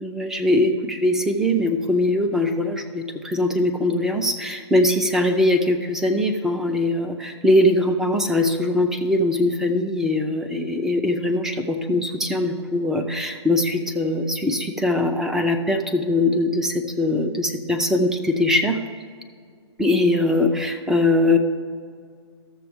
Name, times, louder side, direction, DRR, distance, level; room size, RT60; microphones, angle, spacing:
voice 1, 0.0-18.8 19.8-21.4, left 1 dB, 5° right, 5 dB, 0.4 m, -21 dB
12.5 x 7.0 x 3.5 m, 2.1 s
hypercardioid pair, 150°, 15 cm